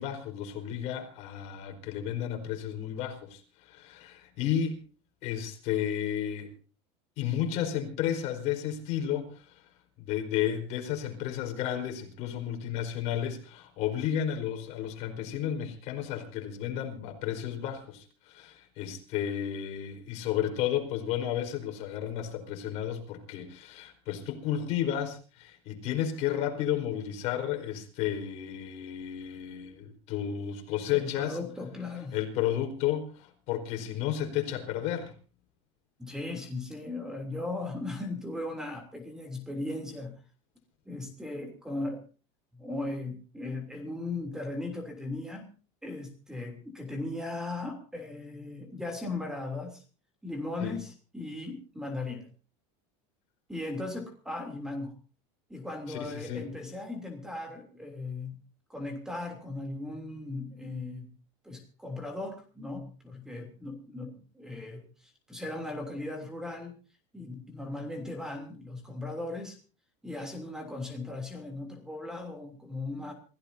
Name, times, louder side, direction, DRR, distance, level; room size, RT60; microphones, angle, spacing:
voice 1, 0.0-4.8 5.2-6.5 7.2-9.7 10.0-31.4 32.1-35.1 50.6-50.8 55.9-56.5, left 10 dB, 50° left, 4 dB, 4.6 m, -32 dB
voice 2, 30.9-32.1 36.0-40.1 40.8-42.0 42.5-45.5 45.8-49.8 50.2-52.3 53.5-54.9 55.5-58.3 58.7-61.1 61.4-66.7 67.1-69.6 70.0-73.1, left 2 dB, 5° right, 3 dB, 3.2 m, -37 dB
28.0 x 16.0 x 2.8 m, 0.37 s
cardioid pair, 160°, 15 cm